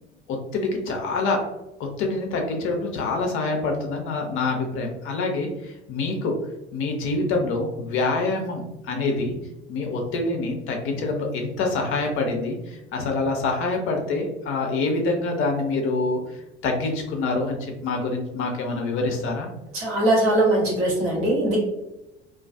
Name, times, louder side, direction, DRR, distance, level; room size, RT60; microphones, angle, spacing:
voice 1, 0.5-1.4 1.8-6.3 6.7-9.4 9.7-19.5, left 3 dB, 40° left, 2 dB, 0.6 m, -26 dB
voice 2, 19.7-21.6, right 1 dB, 45° right, -4 dB, 1.3 m, -21 dB
2.5 x 2.3 x 2.4 m, 0.94 s
figure-of-eight pair, 65°, 32 cm